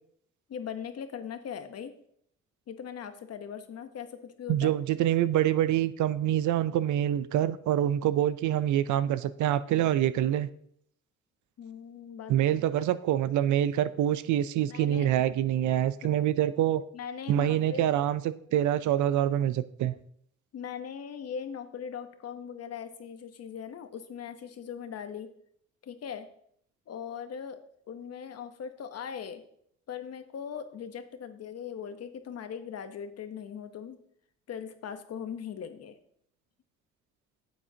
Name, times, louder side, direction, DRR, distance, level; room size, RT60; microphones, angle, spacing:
voice 1, 0.5-1.9 2.7-4.7 11.6-12.3 14.7-15.1 16.9-17.8 20.5-25.3 25.8-26.3 26.9-27.6 27.9-29.4 29.9-34.0 34.5-36.0, left 7 dB, 55° left, 9 dB, 0.9 m, -40 dB
voice 2, 4.5-10.5 12.3-16.8 17.3-20.0, right 11 dB, 75° right, 15 dB, 0.5 m, -26 dB
9.5 x 7.7 x 2.8 m, 0.68 s
cardioid pair, 90°, 30 cm